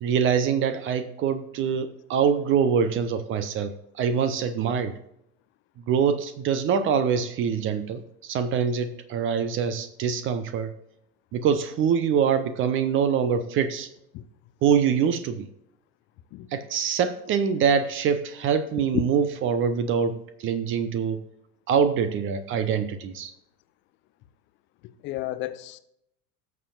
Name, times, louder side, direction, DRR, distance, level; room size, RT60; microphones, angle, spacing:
voice 1, 0.0-4.9 5.9-10.7 11.3-13.9 14.6-15.5 16.5-21.2 21.7-23.3, right 7 dB, 25° right, 11 dB, 0.7 m, -24 dB
voice 2, 25.0-25.8, left 16 dB, 25° left, 13 dB, 0.5 m, -30 dB
16.5 x 7.0 x 2.4 m, 0.77 s
figure-of-eight pair, 85°, 46 cm